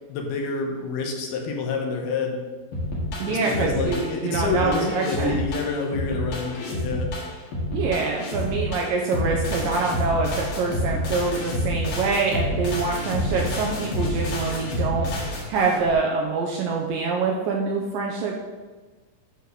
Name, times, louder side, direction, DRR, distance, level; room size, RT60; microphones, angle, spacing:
voice 1, 0.1-2.4 3.2-7.1, left 4 dB, 75° left, 2 dB, 2.8 m, -28 dB
sound 1, 2.7-15.9, left 1 dB, 60° left, 3.3 m, -28 dB
voice 2, 3.2-5.4 7.7-18.3, right 4 dB, 75° right, -1 dB, 2.1 m, -25 dB
9.4 x 4.4 x 6.9 m, 1.3 s
omnidirectional pair, 4.8 m